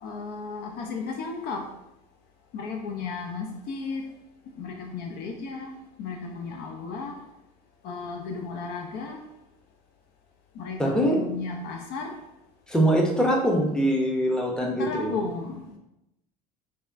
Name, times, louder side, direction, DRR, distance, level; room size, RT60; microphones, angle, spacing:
voice 1, 0.0-1.7 2.5-4.0 4.6-7.2 7.8-9.2 10.6-12.1 14.8-15.7, left 4 dB, 55° left, 2 dB, 0.4 m, -34 dB
voice 2, 10.8-11.2 12.7-15.1, right 1 dB, 5° left, -1 dB, 0.6 m, -23 dB
3.4 x 2.2 x 2.5 m, 0.88 s
hypercardioid pair, 75°, 20 cm